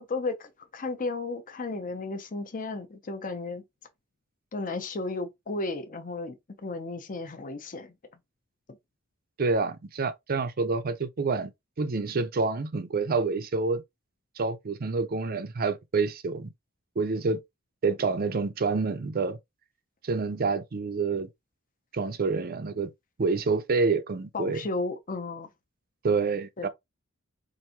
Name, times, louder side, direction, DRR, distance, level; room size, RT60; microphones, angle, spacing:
voice 1, 0.1-3.6 4.5-6.4 6.6-7.9 24.3-25.5 26.6-26.7, left 3 dB, 40° left, 0.7 m, -34 dB
voice 2, 9.4-11.5 11.8-13.8 14.4-16.5 17.0-17.4 17.8-19.4 20.0-21.3 21.9-22.9 23.2-24.6 26.0-26.7, right 4 dB, 45° right, 0.5 m, -27 dB
4.6 x 2.6 x 2.8 m
head